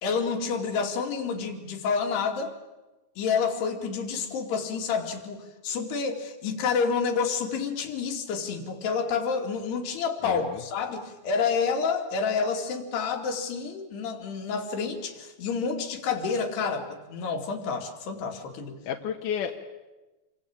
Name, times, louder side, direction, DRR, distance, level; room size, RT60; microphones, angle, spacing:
voice 1, 0.0-2.5 3.2-18.8, left 5 dB, 80° left, 5 dB, 4.6 m, -29 dB
voice 2, 10.2-10.6 18.9-19.7, left 8 dB, 65° left, 2 dB, 2.5 m, -32 dB
28.0 x 23.5 x 8.8 m, 1.1 s
omnidirectional pair, 4.6 m